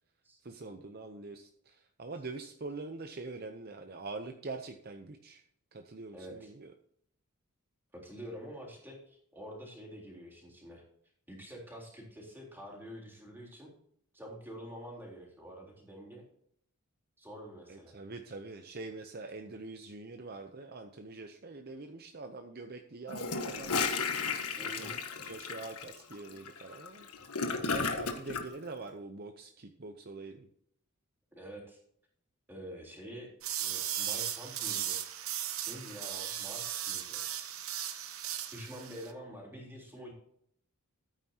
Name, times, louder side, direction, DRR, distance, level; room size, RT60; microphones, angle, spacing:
voice 1, 0.4-5.4 5.7-6.7 17.7-23.9 24.6-27.1 27.6-30.5, right 3 dB, 45° right, 5 dB, 0.7 m, -44 dB
voice 2, 6.1-6.5 7.9-10.8 11.3-13.7 14.1-16.2 17.2-18.0 24.6-25.0 31.3-31.8 32.5-33.3 33.6-35.0 35.7-37.2 38.4-40.1, equal, 10° right, -2 dB, 3.7 m, -47 dB
Gurgling / Toilet flush, 23.1-28.4, left 4 dB, 85° left, 1.5 m, -34 dB
sound 1, 33.4-39.1, right 11 dB, 70° right, 1.1 m, -37 dB
14.0 x 9.1 x 2.9 m, 0.68 s
head